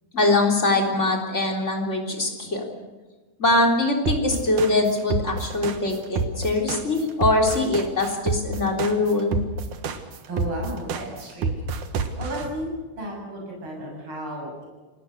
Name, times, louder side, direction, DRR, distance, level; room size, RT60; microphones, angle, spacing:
voice 1, 0.1-2.6 3.4-9.4, left 2 dB, 25° left, 1 dB, 3.8 m, -22 dB
sound 1, 4.1-12.4, right 5 dB, 85° right, 3.0 m, -27 dB
voice 2, 10.3-11.7 12.2-12.7 12.9-14.7, right 1 dB, 45° right, -1 dB, 8.2 m, -33 dB
29.5 x 19.0 x 6.6 m, 1.3 s
omnidirectional pair, 3.4 m